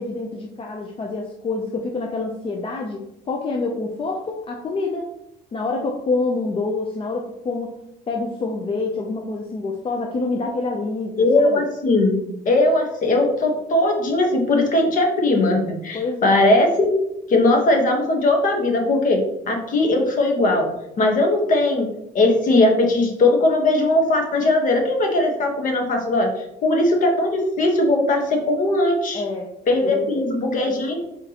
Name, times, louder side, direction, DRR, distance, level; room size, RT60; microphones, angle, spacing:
voice 1, 0.0-3.0 3.3-5.1 5.5-7.7 8.1-11.6 15.9-16.4 29.1-29.5 29.8-30.0, left 3 dB, 35° left, 1 dB, 0.5 m, -27 dB
voice 2, 11.2-12.2 12.4-17.0 17.3-20.7 21.0-21.9 22.1-26.3 26.6-29.2 29.7-31.0, left 2 dB, 50° left, 2 dB, 1.2 m, -19 dB
4.4 x 4.0 x 2.9 m, 0.83 s
cardioid pair, 110°, 17 cm